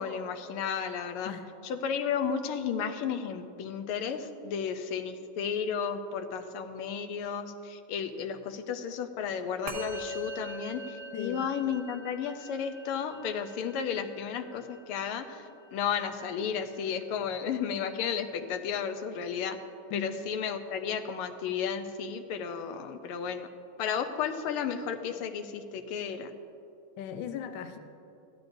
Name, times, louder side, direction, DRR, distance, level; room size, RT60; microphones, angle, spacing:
voice 1, 0.0-1.3 1.6-19.6 19.9-23.5 23.8-26.3, left 7 dB, 85° left, 7 dB, 1.6 m, -33 dB
Musical instrument, 9.7-19.2, equal, 45° right, 1.1 m, -45 dB
voice 2, 11.1-11.5 19.9-20.2 27.0-27.8, left 8 dB, 70° left, 6 dB, 1.2 m, -38 dB
15.5 x 12.0 x 2.6 m, 2.8 s
omnidirectional pair, 2.3 m